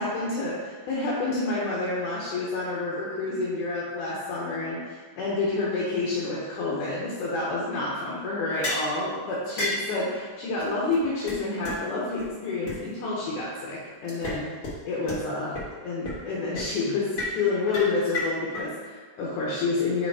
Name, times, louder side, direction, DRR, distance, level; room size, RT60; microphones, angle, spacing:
voice 1, 0.0-14.5 14.8-15.6 15.8-17.1 17.3-20.1, left 3 dB, 70° left, -6 dB, 2.2 m, -29 dB
sound 1, 8.6-8.9 9.6-9.9 10.6-10.7 10.9-11.0 11.3-11.4 11.6-11.7 12.2-12.3 12.7-12.8 14.1-14.4 14.6-14.7 15.1-15.2 15.5-15.6 16.0-16.3 16.6-16.7 17.2-17.4 17.7-18.6, left 1 dB, 90° left, 0.8 m, -30 dB
5.6 x 4.9 x 4.7 m, 1.5 s
omnidirectional pair, 4.2 m